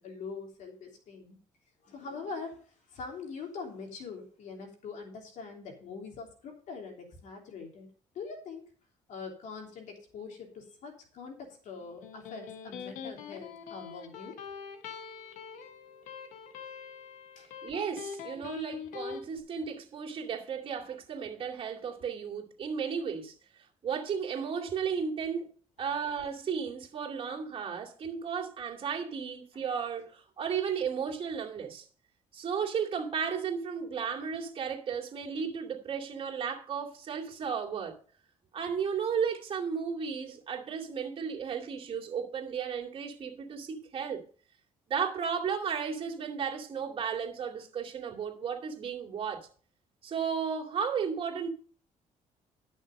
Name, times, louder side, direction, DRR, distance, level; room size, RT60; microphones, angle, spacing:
voice 1, 0.0-1.4 1.8-2.6 2.9-7.9 8.1-8.6 9.1-14.4 17.3-17.5, left 4 dB, 70° left, 3.3 m, -43 dB
Electric guitar, 11.8-19.2, left 6 dB, 90° left, 1.4 m, -43 dB
voice 2, 17.6-23.3 23.8-25.5 25.8-31.9 32.3-38.0 38.5-44.2 44.9-49.5 50.0-51.5, right 6 dB, 45° right, 2.4 m, -34 dB
11.0 x 6.5 x 5.3 m
cardioid pair, 95°, 13 cm